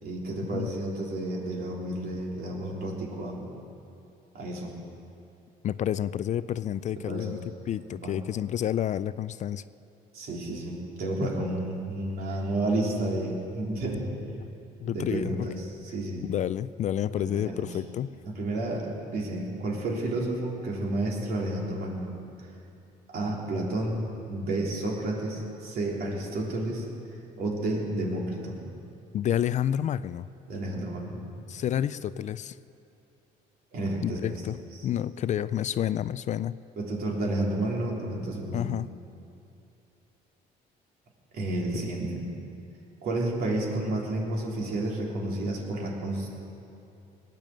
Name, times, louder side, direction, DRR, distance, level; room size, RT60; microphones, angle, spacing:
voice 1, 0.0-3.5 4.3-4.7 7.0-7.4 7.8-8.2 10.1-14.1 14.8-16.2 17.1-17.7 18.2-22.1 23.1-24.0 24.3-26.9 27.3-28.6 30.5-31.2 33.7-34.4 34.7-34.9 36.8-38.7 41.3-42.3 43.0-46.3, right 2 dB, 65° right, -2 dB, 3.5 m, -31 dB
voice 2, 5.6-7.4 7.7-9.6 11.2-11.5 14.8-15.4 16.3-18.1 29.1-30.3 31.5-32.6 34.0-34.6 34.8-36.5 38.5-38.9 41.8-41.9, left 10 dB, 45° left, 16 dB, 0.4 m, -29 dB
19.0 x 9.1 x 7.8 m, 2.7 s
cardioid pair, 110°, 17 cm